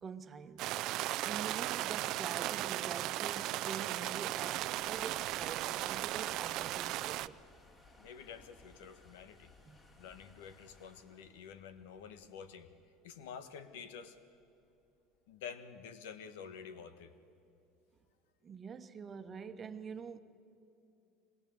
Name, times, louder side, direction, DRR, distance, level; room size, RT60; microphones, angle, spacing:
voice 1, 0.0-7.4 9.7-10.0 18.4-20.2, right 6 dB, 30° right, 1.3 m, -46 dB
sound 1, 0.6-7.3, right 16 dB, 60° right, 0.5 m, -36 dB
sound 2, 3.8-15.2, left 2 dB, 30° left, 4.4 m, -63 dB
voice 2, 8.0-9.5 10.0-12.7 13.0-14.2 15.3-17.1, left 7 dB, 80° left, 1.5 m, -49 dB
24.5 x 21.0 x 8.0 m
supercardioid pair, 95°, 0 cm